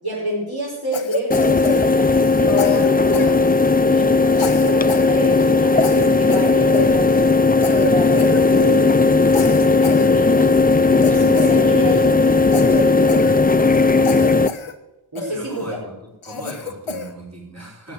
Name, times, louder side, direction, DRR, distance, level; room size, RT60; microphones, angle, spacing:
voice 1, 0.0-3.4 3.9-7.3 7.9-8.9 9.4-14.5 15.1-15.6, equal, 50° right, -5 dB, 4.9 m, -28 dB
Cough, 0.9-2.3 2.6-3.8 4.3-5.1 5.4-5.5 5.8-7.4 7.6-7.9 8.2-8.8 9.3-10.5 11.0-12.1 12.5-13.8 14.0-14.7 15.2-15.7 16.2-17.1, left 4 dB, 85° left, 1.1 m, -29 dB
sound 1, 1.3-14.5, left 3 dB, 20° left, 0.5 m, -16 dB
voice 2, 15.3-15.9 16.2-17.9, right 1 dB, 30° right, -4 dB, 5.3 m, -37 dB
13.0 x 8.6 x 7.9 m, 0.94 s
wide cardioid pair, 55°, 49 cm